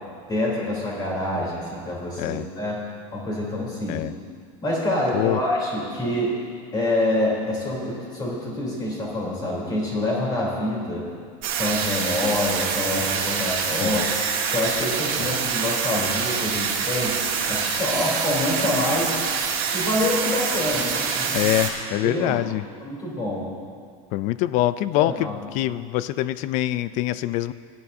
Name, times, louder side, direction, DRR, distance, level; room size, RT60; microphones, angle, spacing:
voice 1, 0.3-2.8 3.1-4.1 4.6-6.3 6.7-11.1 11.6-14.1 14.5-17.1 17.5-19.2 19.7-21.5 22.0-22.4 22.8-23.5 24.9-25.4, left 1 dB, 20° left, -4 dB, 3.4 m, -26 dB
sound 1, 11.4-21.7, right 6 dB, 50° right, 1.8 m, -25 dB
voice 2, 13.7-14.1 15.2-15.3 21.3-22.7 24.1-27.5, left 15 dB, 45° left, 16 dB, 0.4 m, -25 dB
17.5 x 10.5 x 2.7 m, 2.1 s
supercardioid pair, 140°, 18 cm